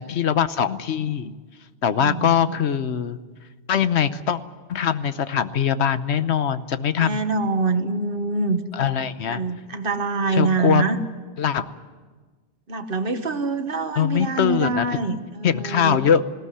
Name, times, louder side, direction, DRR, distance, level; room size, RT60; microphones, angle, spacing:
voice 1, 0.0-1.4 1.8-3.2 3.7-4.4 4.7-7.2 8.7-9.4 10.3-10.8 11.4-11.7 14.0-15.0 15.4-16.2, left 8 dB, 80° left, 13 dB, 1.1 m, -22 dB
voice 2, 2.0-2.6 7.0-8.6 9.2-11.0 12.7-16.0, right 3 dB, 55° right, 8 dB, 1.5 m, -25 dB
19.5 x 17.5 x 9.8 m, 1.4 s
omnidirectional pair, 1.1 m